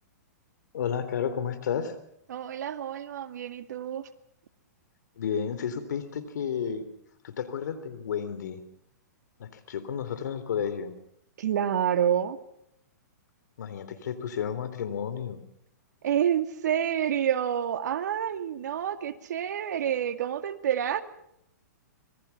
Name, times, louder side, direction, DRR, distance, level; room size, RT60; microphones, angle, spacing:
voice 1, 0.7-1.9 5.2-6.8 7.2-8.6 9.4-10.9 13.6-15.4, left 7 dB, 70° left, 12 dB, 3.6 m, -32 dB
voice 2, 2.3-4.1 11.4-12.4 16.0-21.0, right 9 dB, 70° right, 9 dB, 2.1 m, -28 dB
26.0 x 21.0 x 6.0 m, 0.75 s
hypercardioid pair, 140°, 10 cm